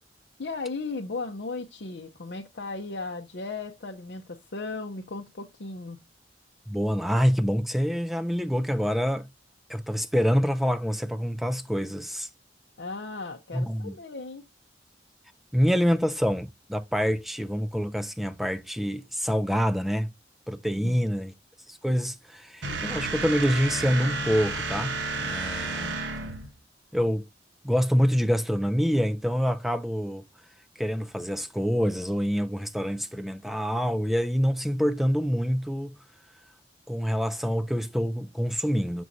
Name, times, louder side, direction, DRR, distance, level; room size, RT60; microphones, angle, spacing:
voice 1, 0.4-6.0 12.8-14.4 20.7-21.0, left 3 dB, 65° left, 0.7 m, -36 dB
voice 2, 6.7-9.3 9.7-12.3 13.5-13.9 15.5-20.1 20.5-21.3 21.7-26.0 26.9-27.3 27.6-30.2 30.8-36.0 36.9-39.0, equal, ahead, 0.5 m, -26 dB
sound 1, 22.6-26.5, right 3 dB, 80° right, 1.1 m, -31 dB
6.2 x 6.1 x 2.7 m
head